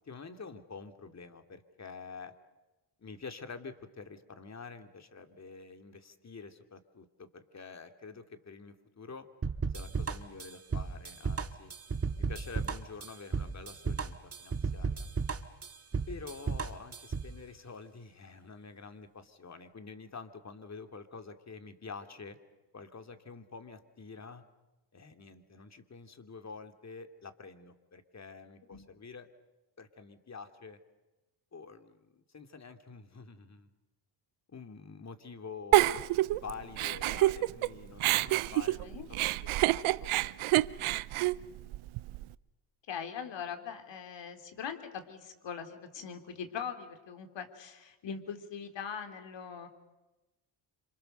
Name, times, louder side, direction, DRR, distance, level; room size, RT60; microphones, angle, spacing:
voice 1, 0.0-2.3 3.0-9.3 9.7-11.7 12.2-15.1 16.1-22.4 22.7-24.4 24.9-29.3 29.8-30.8 31.5-33.7 34.5-36.1 36.3-40.3, left 4 dB, 35° left, 8 dB, 2.6 m, -47 dB
sound 1, 9.4-17.3, right 4 dB, 30° right, 1.8 m, -34 dB
Giggle, 35.7-37.7 38.0-42.2, right 17 dB, 75° right, 0.8 m, -27 dB
voice 2, 42.9-49.7, left 7 dB, 60° left, 7 dB, 3.5 m, -41 dB
27.5 x 26.5 x 6.7 m, 1.1 s
cardioid pair, 80°, 49 cm